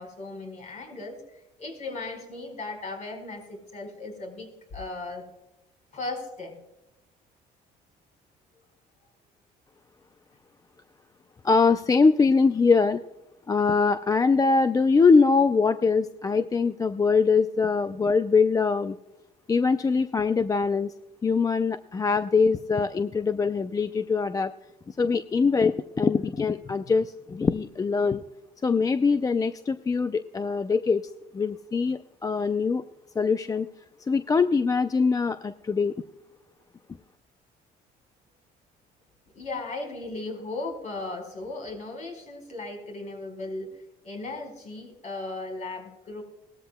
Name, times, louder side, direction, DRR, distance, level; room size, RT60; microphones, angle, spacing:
voice 1, 0.0-5.3 5.9-6.6 39.3-43.7 44.0-46.2, left 2 dB, 45° left, 3 dB, 4.6 m, -37 dB
voice 2, 11.4-13.0 13.5-19.0 19.5-20.9 21.2-24.5 24.9-28.2 28.6-32.8 33.2-33.7 34.1-35.9, left 4 dB, 20° left, 11 dB, 0.4 m, -23 dB
18.5 x 13.5 x 2.2 m, 0.95 s
cardioid pair, 110°, 17 cm